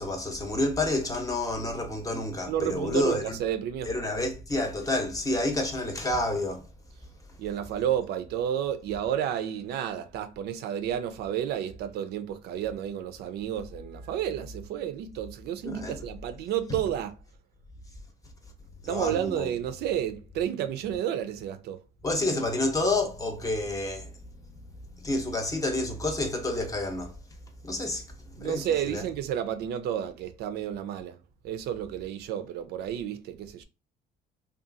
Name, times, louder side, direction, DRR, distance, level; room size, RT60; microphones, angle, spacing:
voice 1, 0.0-3.4 3.9-6.7 15.6-16.0 16.7-16.8 18.8-19.5 22.0-24.1 25.0-27.2 27.6-29.0, left 2 dB, 20° left, 0.7 m, -29 dB
voice 2, 2.5-3.9 7.4-17.1 18.9-21.8 28.4-31.2 31.4-33.6, right 10 dB, 75° right, 0.4 m, -31 dB
2.7 x 2.3 x 2.5 m
cardioid pair, 110°, 17 cm